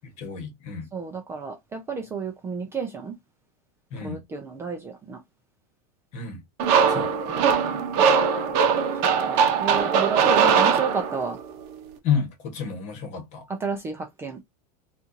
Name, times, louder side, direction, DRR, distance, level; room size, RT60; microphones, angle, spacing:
voice 1, 0.2-0.9 3.9-4.2 6.1-6.4 6.9-7.1 12.0-13.5, left 6 dB, 35° left, 1.3 m, -30 dB
voice 2, 0.9-3.1 4.0-5.2 7.0-8.2 9.3-11.4 13.6-14.4, right 5 dB, 10° right, 0.5 m, -32 dB
sound 1, 6.6-11.4, right 6 dB, 45° right, 0.8 m, -21 dB
4.2 x 2.5 x 2.7 m
supercardioid pair, 160°, 20 cm